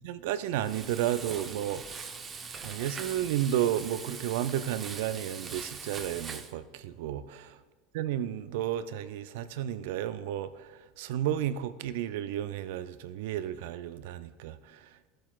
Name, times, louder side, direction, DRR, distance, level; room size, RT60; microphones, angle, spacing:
voice 1, 0.0-2.0 2.6-7.6 7.9-15.1, right 11 dB, 70° right, 0.4 m, -32 dB
Frying (food), 0.6-6.5, right 5 dB, 30° right, 0.8 m, -42 dB
15.0 x 7.6 x 2.3 m
hypercardioid pair, 80°, 0 cm